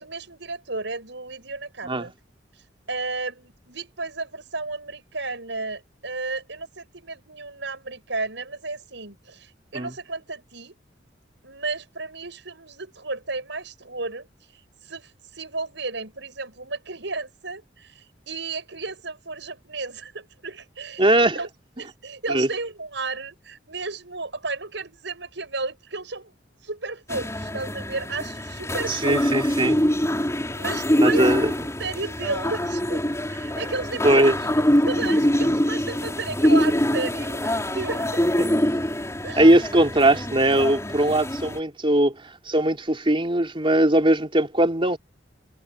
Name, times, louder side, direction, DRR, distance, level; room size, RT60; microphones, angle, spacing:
voice 1, 0.0-2.1 2.5-10.8 11.4-21.1 21.3-21.5 21.8-26.3 26.6-29.2 30.5-38.3 39.2-39.4, right 3 dB, 75° right, 8.0 m, -33 dB
voice 2, 21.0-21.4 22.3-22.5 28.9-29.8 31.0-31.5 34.0-34.3 38.4-38.5 39.4-42.1 42.5-45.0, right 1 dB, 30° right, 3.6 m, -20 dB
sound 1, 27.1-41.6, equal, 15° left, 5.6 m, -24 dB
head